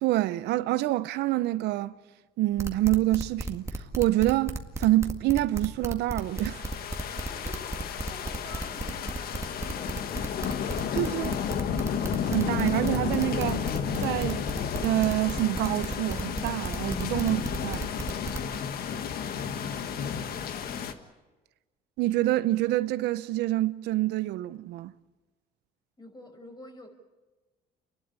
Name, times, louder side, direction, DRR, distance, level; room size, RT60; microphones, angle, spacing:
voice 1, 0.0-2.0 2.4-6.7 10.9-11.3 12.2-13.7 14.0-14.4 14.8-17.9 22.0-24.9, right 16 dB, 80° right, 0.7 m, -27 dB
sound 1, 2.6-18.6, right 2 dB, 15° right, 1.9 m, -34 dB
sound 2, 6.2-20.9, left 7 dB, 65° left, 1.6 m, -32 dB
voice 2, 7.3-10.2 18.6-21.1 26.0-26.9, left 1 dB, 25° left, 5.7 m, -49 dB
29.5 x 12.0 x 9.9 m
cardioid pair, 110°, 17 cm